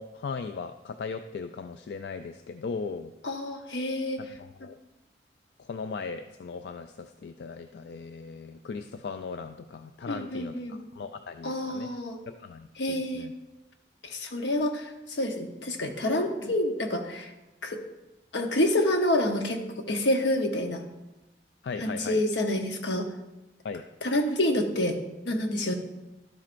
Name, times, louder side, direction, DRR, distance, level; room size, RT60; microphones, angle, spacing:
voice 1, 0.0-3.1 4.2-4.8 5.6-11.9 12.3-13.3 21.6-22.2 23.6-23.8, left 5 dB, 75° left, 8 dB, 0.3 m, -38 dB
voice 2, 3.2-4.2 10.1-10.8 11.4-12.2 12.8-13.3 14.1-14.9 15.2-17.3 17.6-17.8 18.3-19.6 19.9-20.8 21.8-23.0 24.0-25.0 25.2-25.7, left 1 dB, 90° left, 5 dB, 0.9 m, -27 dB
12.0 x 7.4 x 2.6 m, 1.0 s
head